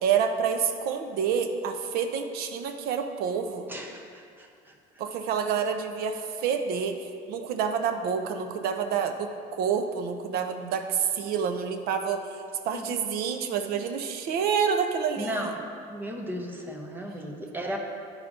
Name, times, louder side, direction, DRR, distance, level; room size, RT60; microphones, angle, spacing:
voice 1, 0.0-3.7 5.0-12.2 12.6-15.5, right 7 dB, 65° right, 6 dB, 0.5 m, -28 dB
voice 2, 3.7-4.7 12.7-12.9 15.2-15.6 15.9-17.8, equal, 10° right, 1 dB, 0.6 m, -35 dB
11.0 x 4.8 x 2.5 m, 2.4 s
cardioid pair, 160°, 17 cm